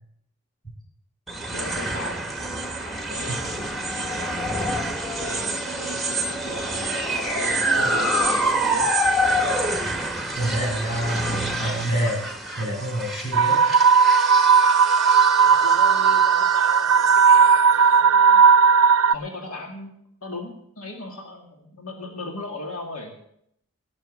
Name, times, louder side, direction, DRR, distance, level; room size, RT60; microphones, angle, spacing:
sound 1, 1.3-17.7, right 1 dB, ahead, 1.5 m, -27 dB
voice 1, 1.5-2.2 3.1-3.4 3.9-4.3 5.1-5.5 5.7-6.7 7.3-8.9 15.4-18.4 19.1-20.0 20.2-23.2, left 2 dB, 85° left, 2 dB, 2.2 m, -37 dB
voice 2, 10.4-12.2 12.6-13.6, right 1 dB, 25° left, -4 dB, 7.5 m, -27 dB
sound 2, 13.3-19.1, right 6 dB, 80° right, 0.5 m, -16 dB
17.5 x 6.3 x 8.9 m, 0.73 s
head